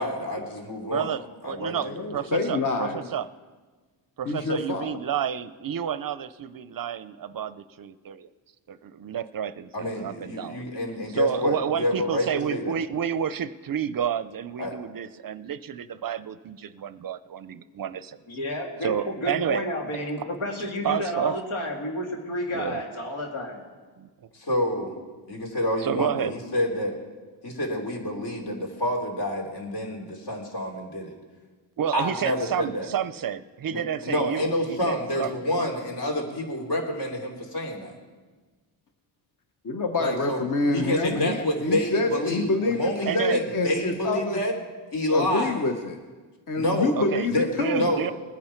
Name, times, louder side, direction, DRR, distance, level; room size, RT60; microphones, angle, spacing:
voice 1, 0.0-1.1 1.4-1.9 9.7-12.8 14.6-14.7 24.3-24.9 25.3-26.9 27.4-31.1 31.9-32.9 33.7-37.9 40.0-40.4 40.7-44.5 44.9-45.6 46.6-47.0 47.3-47.5 47.7-48.1, left 1 dB, 60° left, 1 dB, 3.0 m, -28 dB
voice 2, 0.9-3.3 4.2-8.3 8.7-10.6 11.1-18.2 18.8-19.6 20.8-21.3 22.5-22.8 24.0-24.1 25.8-26.3 31.8-35.4 43.1-43.4 47.0-48.1, right 8 dB, 50° right, 14 dB, 0.5 m, -30 dB
voice 3, 1.8-3.0 4.3-5.0 39.6-44.4 45.1-46.0 46.5-47.9, left 3 dB, 40° left, 5 dB, 1.0 m, -27 dB
voice 4, 18.3-23.6, left 1 dB, 85° left, 0 dB, 2.6 m, -31 dB
20.0 x 9.8 x 4.5 m, 1.4 s
cardioid pair, 90°, 47 cm